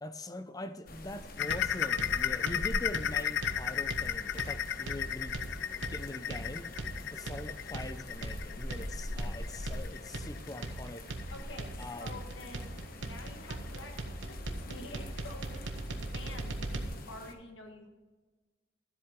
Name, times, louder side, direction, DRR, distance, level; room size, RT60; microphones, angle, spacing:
voice 1, 0.0-5.4 5.9-6.7 7.1-11.1 11.8-12.2, left 1 dB, 20° left, 0.6 m, -43 dB
sound 1, 0.9-17.3, left 1 dB, 50° left, 1.0 m, -45 dB
sound 2, 1.4-12.7 13.1-13.3 13.7-13.8 14.3-14.4, left 9 dB, 65° left, 0.4 m, -35 dB
sound 3, 1.5-16.8, right 2 dB, 75° right, 1.1 m, -40 dB
voice 2, 11.3-17.9, left 2 dB, 90° left, 1.4 m, -48 dB
13.0 x 7.8 x 3.7 m
head